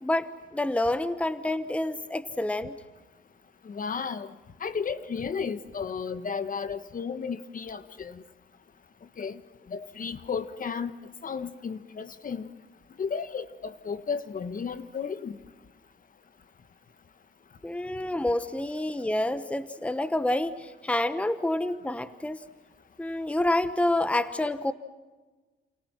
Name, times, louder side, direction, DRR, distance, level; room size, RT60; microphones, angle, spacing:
voice 1, 0.0-2.8 17.6-22.4 23.0-24.7, left 1 dB, 5° left, 12 dB, 1.1 m, -28 dB
voice 2, 3.6-4.3 4.6-8.2 9.2-9.4 9.7-12.5 13.0-15.4, left 6 dB, 45° left, 12 dB, 1.4 m, -33 dB
29.5 x 28.0 x 5.9 m, 1.3 s
cardioid pair, 90°, 20 cm